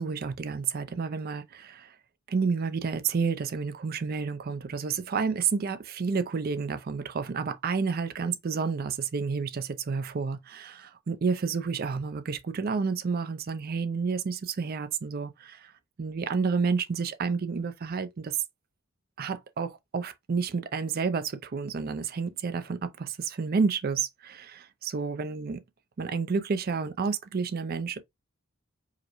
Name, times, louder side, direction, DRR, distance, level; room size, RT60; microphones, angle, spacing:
voice 1, 0.0-1.9 2.3-15.7 16.0-18.3 19.2-25.6 26.0-28.0, right 5 dB, 45° right, 0.4 m, -30 dB
4.8 x 2.1 x 3.0 m
head